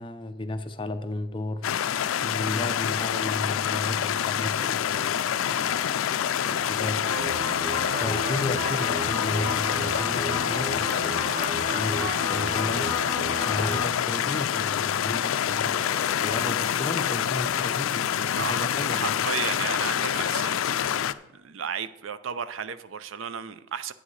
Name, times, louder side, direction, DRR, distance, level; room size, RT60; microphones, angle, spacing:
voice 1, 0.0-1.7 2.2-5.2 5.4-5.9 6.5-7.0 8.0-11.1 11.7-12.9 13.4-19.2, left 2 dB, 25° left, 9 dB, 0.5 m, -33 dB
sound 1, 1.6-21.1, left 9 dB, 80° left, 0.4 m, -27 dB
sound 2, 7.0-13.8, left 1 dB, 40° right, 1.4 m, -33 dB
voice 2, 18.4-21.1 21.3-23.9, right 7 dB, 70° right, 13 dB, 0.5 m, -34 dB
10.0 x 9.2 x 3.2 m, 0.96 s
head